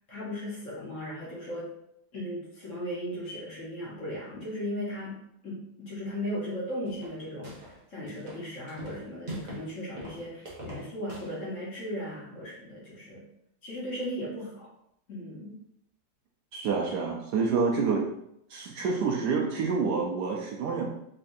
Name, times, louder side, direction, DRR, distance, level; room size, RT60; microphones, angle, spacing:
voice 1, 0.1-1.7 2.1-5.2 5.4-13.2 13.6-14.7 15.1-15.6, equal, 50° left, -6 dB, 1.1 m, -37 dB
sound 1, 6.8-7.8 8.1-9.7 10.0-11.4, right 1 dB, 40° right, 0.6 m, -42 dB
voice 2, 16.5-18.0 18.5-20.8, right 5 dB, 70° right, -1 dB, 1.1 m, -28 dB
3.9 x 3.3 x 2.6 m, 0.76 s
omnidirectional pair, 2.1 m